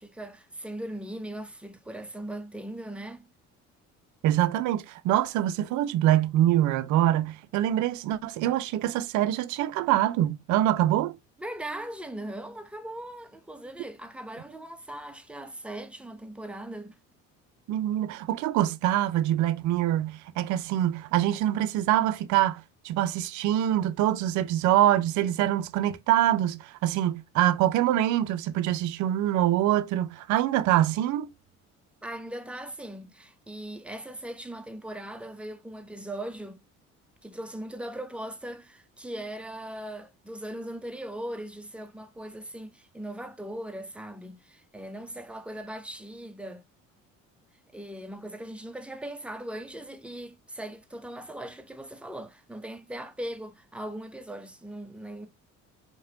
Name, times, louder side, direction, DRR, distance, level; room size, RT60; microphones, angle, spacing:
voice 1, 0.0-3.3 11.4-17.0 32.0-36.6 37.2-46.6 47.7-55.3, right 1 dB, 5° right, 0.6 m, -39 dB
voice 2, 4.2-11.2 17.7-31.3, right 12 dB, 50° right, 0.5 m, -25 dB
4.8 x 2.3 x 2.7 m
hypercardioid pair, 55°, 40 cm